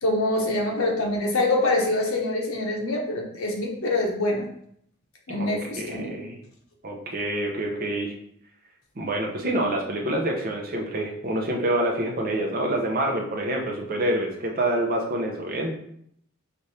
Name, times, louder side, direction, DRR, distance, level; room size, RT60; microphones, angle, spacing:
voice 1, 0.0-4.4 5.3-6.2, left 2 dB, 85° left, 0 dB, 0.9 m, -25 dB
voice 2, 5.8-6.4 6.8-8.1 9.0-15.7, right 1 dB, 45° right, 1 dB, 0.7 m, -27 dB
3.3 x 2.5 x 4.1 m, 0.70 s
head